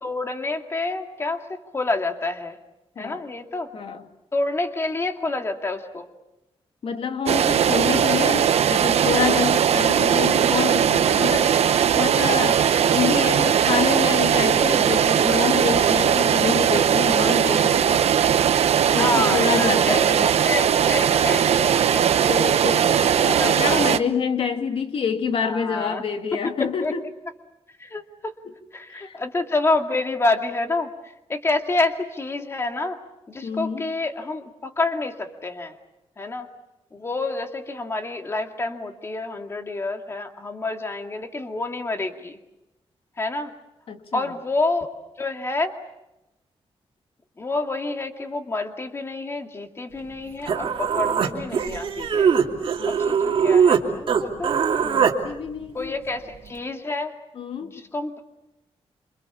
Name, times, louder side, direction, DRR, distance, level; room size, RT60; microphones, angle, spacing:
voice 1, 0.0-2.6 3.0-3.7 4.3-6.1 7.8-8.0 18.9-22.1 23.2-23.5 25.4-26.0 26.3-26.4 26.8-26.9 27.8-28.4 28.7-30.9 31.3-33.0 33.3-35.8 36.2-36.5 36.9-42.4 43.2-43.5 44.1-44.9 45.2-45.7 47.4-52.4 52.9-54.5 55.7-57.1 57.6-58.2, left 2 dB, 25° left, 5 dB, 2.3 m, -28 dB
voice 2, 3.0-3.3 3.7-4.0 6.8-11.6 11.9-18.1 18.9-20.3 22.2-27.0 28.9-29.2 33.4-33.9 43.9-44.3 52.8-53.1 54.8-55.9 57.4-57.8, left 6 dB, 60° left, 6 dB, 2.3 m, -27 dB
sound 1, 7.3-24.0, right 9 dB, 80° right, 1.0 m, -19 dB
Human voice, 50.1-50.2 50.5-53.8 54.1-55.1, right 7 dB, 55° right, 2.9 m, -21 dB
27.5 x 26.5 x 7.2 m, 0.92 s
wide cardioid pair, 175°, 11 cm